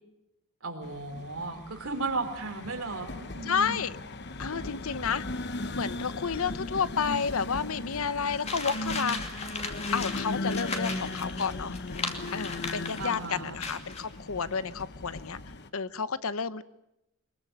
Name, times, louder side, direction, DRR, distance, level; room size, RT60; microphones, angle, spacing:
voice 1, 0.6-3.8 13.0-13.6, right 3 dB, 70° right, 6 dB, 3.8 m, -35 dB
sound 1, 0.8-15.7, left 2 dB, 50° left, 1.1 m, -37 dB
voice 2, 3.5-4.0 4.4-5.2 5.8-9.4 9.9-11.7 12.3-15.4 15.7-16.6, left 6 dB, 75° left, 16 dB, 0.9 m, -31 dB
sound 2, 8.5-13.2 13.6-14.1, left 4 dB, 30° left, 2.6 m, -37 dB
23.5 x 22.0 x 9.3 m, 0.90 s
head